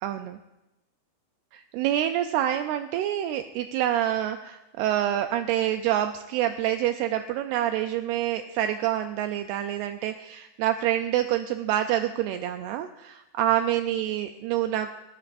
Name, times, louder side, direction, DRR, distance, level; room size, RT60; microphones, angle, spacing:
voice 1, 0.0-0.4 1.5-14.9, right 12 dB, 85° right, 7 dB, 2.4 m, -27 dB
29.5 x 10.0 x 2.6 m, 0.96 s
omnidirectional pair, 4.9 m